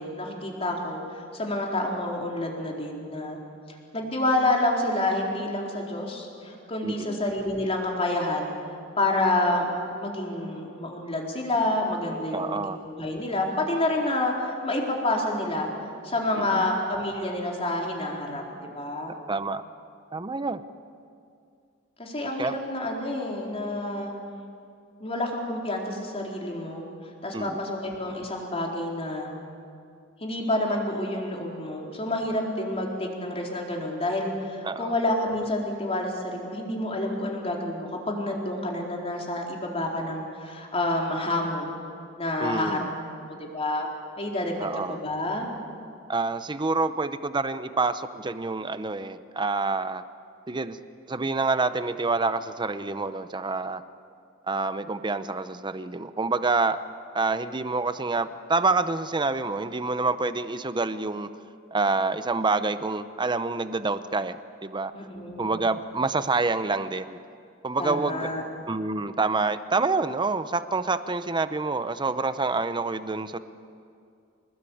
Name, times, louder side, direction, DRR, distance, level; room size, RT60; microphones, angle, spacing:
voice 1, 0.0-3.4 3.9-8.5 9.0-15.7 16.0-19.1 22.0-24.1 25.0-26.8 27.2-29.3 30.2-41.7 42.2-42.9 43.3-43.9 44.2-45.5 64.9-65.6 67.8-68.4, left 1 dB, 30° left, -1 dB, 4.2 m, -28 dB
voice 2, 6.8-7.2 12.3-12.8 16.4-16.6 19.3-19.6 20.1-20.6 22.4-22.5 27.3-27.6 34.6-34.9 42.4-42.9 44.6-45.0 46.1-50.0 50.5-50.8 51.1-53.8 54.5-56.8 57.1-61.3 61.7-64.9 65.4-67.2 67.6-68.3 68.7-73.4, right 3 dB, 20° right, 12 dB, 0.7 m, -27 dB
26.0 x 20.5 x 8.7 m, 2.4 s
head